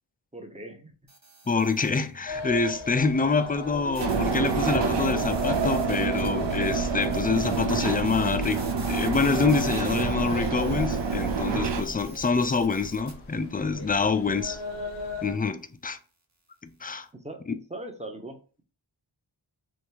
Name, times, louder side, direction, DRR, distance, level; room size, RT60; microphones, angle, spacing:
voice 1, 0.3-0.9 17.2-18.4, right 1 dB, 15° right, 0.7 m, -40 dB
sound 1, 1.1-2.2 3.9-13.1, right 2 dB, 35° right, 0.9 m, -47 dB
voice 2, 1.5-14.6 15.2-16.0 16.6-17.1, left 4 dB, 20° left, 0.3 m, -26 dB
sound 2, 2.3-15.3, left 3 dB, 75° left, 0.9 m, -38 dB
sound 3, 4.0-11.8, right 5 dB, 65° right, 0.6 m, -27 dB
3.4 x 2.6 x 2.9 m
wide cardioid pair, 40°, 48 cm